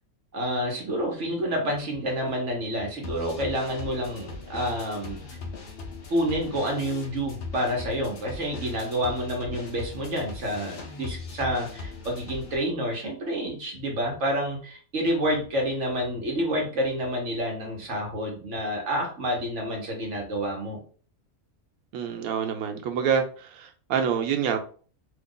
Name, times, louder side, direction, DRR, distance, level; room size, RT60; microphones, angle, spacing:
voice 1, 0.3-5.4 6.1-20.8, equal, 60° right, 1.3 m, -29 dB
sound 1, 2.7-12.6, left 3 dB, 55° left, 0.8 m, -39 dB
voice 2, 21.9-24.6, right 7 dB, 80° right, 1.1 m, -27 dB
2.9 x 2.4 x 3.7 m
omnidirectional pair, 1.5 m